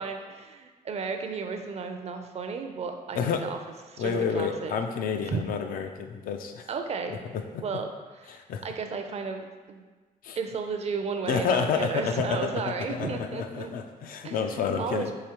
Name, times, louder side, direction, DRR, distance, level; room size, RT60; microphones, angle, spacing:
voice 1, 0.0-3.6 3.9-4.7 5.2-5.4 6.7-7.2 7.6-9.8 10.4-13.7 14.2-15.1, right 5 dB, 45° right, 5 dB, 0.4 m, -34 dB
voice 2, 3.1-3.5 4.0-6.7 7.3-7.6 8.3-8.6 10.2-10.4 11.3-15.1, left 6 dB, 70° left, 6 dB, 0.4 m, -29 dB
4.9 x 2.6 x 2.9 m, 1.3 s
cardioid pair, 100°, 15 cm